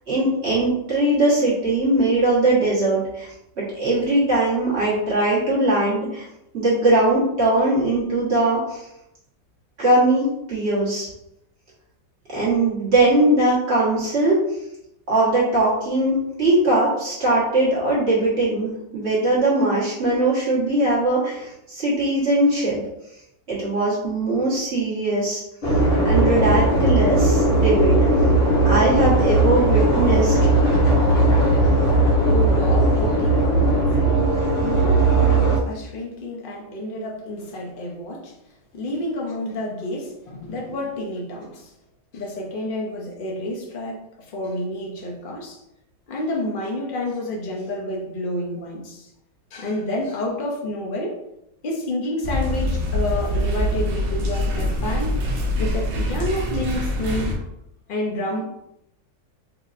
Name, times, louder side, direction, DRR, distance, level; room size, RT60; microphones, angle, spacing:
voice 1, 0.1-3.3 3.6-6.3 6.5-8.9 9.8-11.1 12.3-14.4 15.1-22.8 23.5-25.4 26.1-28.0 28.6-30.3, right 2 dB, 35° right, -8 dB, 1.6 m, -20 dB
sound 1, 25.6-35.6, right 2 dB, 45° left, 0.9 m, -18 dB
voice 2, 32.3-34.2 34.6-38.3 38.7-41.7 42.1-44.0 44.3-45.6 46.1-49.1 49.5-51.2 51.6-55.2 55.6-57.3 57.9-58.5, left 1 dB, 80° left, -1 dB, 0.4 m, -29 dB
sound 2, 52.2-57.4, left 1 dB, 75° right, 1.4 m, -24 dB
4.5 x 2.8 x 2.5 m, 0.82 s
omnidirectional pair, 2.0 m